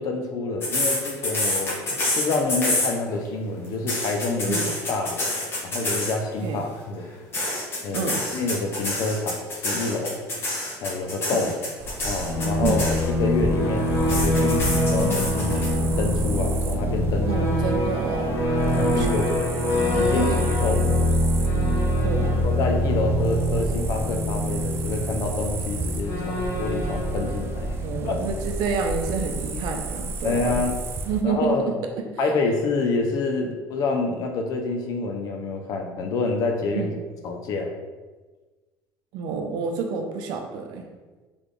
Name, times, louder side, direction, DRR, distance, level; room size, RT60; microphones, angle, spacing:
voice 1, 0.0-1.8 2.1-7.0 7.8-8.1 8.3-10.2 10.8-11.5 12.0-12.9 13.2-17.3 18.5-19.3 19.9-21.0 21.9-27.7 28.0-28.2 30.2-30.8 31.2-31.7 32.2-36.9 37.2-37.7, left 3 dB, 55° left, 3 dB, 0.6 m, -27 dB
sound 1, 0.6-3.3 3.6-6.3 7.3-13.3 14.1-15.7, left 1 dB, 30° left, 1.3 m, -27 dB
sound 2, 11.8-31.2, right 2 dB, 35° right, 0.4 m, -33 dB
sound 3, 12.2-28.7, equal, 75° left, 1.0 m, -25 dB
voice 2, 17.2-20.5 22.0-22.5 27.8-30.6 31.1-32.1 36.7-36.9 39.1-40.9, right 5 dB, 70° right, 4 dB, 0.7 m, -29 dB
4.0 x 3.4 x 3.2 m, 1.3 s
cardioid pair, 150°, 7 cm